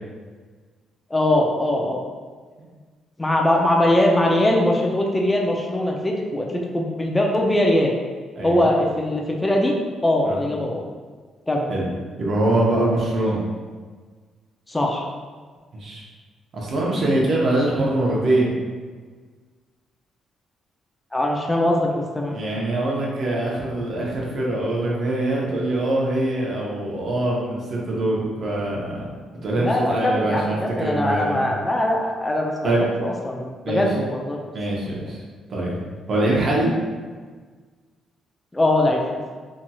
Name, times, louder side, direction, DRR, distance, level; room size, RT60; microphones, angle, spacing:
voice 1, 1.1-2.1 3.2-7.9 8.4-9.7 10.0-10.8 11.5-11.7 14.7-15.1 21.1-22.4 29.6-32.7 33.0-34.4 38.5-39.2, left 1 dB, 15° left, -1 dB, 0.4 m, -21 dB
voice 2, 8.4-8.7 10.3-10.4 11.7-11.9 12.2-13.4 15.7-16.0 16.5-18.5 22.3-29.1 29.4-31.4 32.6-32.9 33.7-33.9 34.5-35.2 35.5-35.8 36.1-36.7, right 1 dB, 55° right, -4 dB, 0.8 m, -23 dB
2.9 x 2.8 x 2.3 m, 1.5 s
cardioid pair, 90°, 0 cm